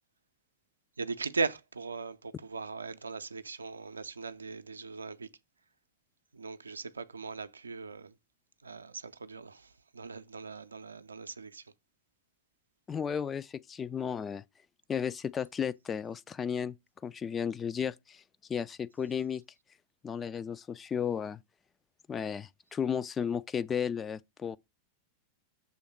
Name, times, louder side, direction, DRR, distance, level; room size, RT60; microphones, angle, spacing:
voice 1, 1.0-5.3 6.3-8.1 8.6-11.6, right 4 dB, 75° right, 0.5 m, -39 dB
voice 2, 12.9-14.4 14.9-16.8 17.0-18.2 18.5-19.4 20.0-21.4 22.1-24.6, left 7 dB, 20° left, 0.4 m, -34 dB
7.0 x 3.4 x 6.1 m
figure-of-eight pair, 90°, 0 cm